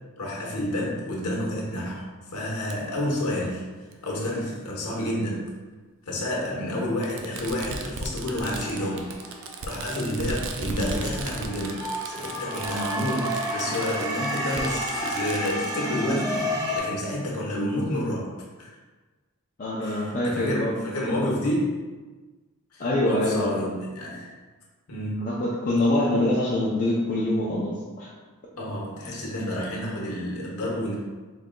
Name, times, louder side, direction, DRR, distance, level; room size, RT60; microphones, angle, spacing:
voice 1, 0.2-3.6 4.0-5.4 6.1-9.1 9.6-11.8 12.0-18.3 18.6-18.7 19.8-21.7 22.7-24.4 24.9-25.2 28.5-30.9, left 1 dB, 80° left, -3 dB, 1.0 m, -29 dB
Fireworks, 2.7-2.8 3.9-4.0 5.3-5.4 7.0-15.8, right 3 dB, 60° right, 0.4 m, -36 dB
sound 1, 8.5-10.4 10.9-16.8, equal, 15° right, 0.6 m, -31 dB
voice 2, 19.6-21.4 22.8-23.6 25.2-28.1, left 1 dB, 35° left, -6 dB, 0.5 m, -25 dB
3.9 x 3.7 x 2.2 m, 1.3 s
head